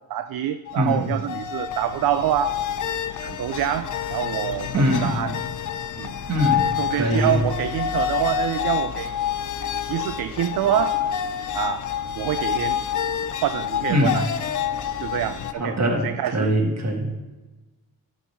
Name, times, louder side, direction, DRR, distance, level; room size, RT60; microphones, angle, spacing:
voice 1, 0.1-2.6 3.2-5.4 6.0-6.1 6.8-9.1 9.8-11.0 11.5-11.9 12.1-12.8 13.4-14.2 15.0-16.5, right 11 dB, 70° right, 10 dB, 0.5 m, -26 dB
sound 1, 0.7-15.5, left 9 dB, 55° left, 0.6 m, -28 dB
voice 2, 0.8-1.1 4.7-5.2 6.3-7.4 13.9-14.2 15.5-17.1, equal, 45° right, 0 dB, 2.0 m, -22 dB
12.0 x 4.0 x 5.9 m, 1.2 s
cardioid pair, 100°, 37 cm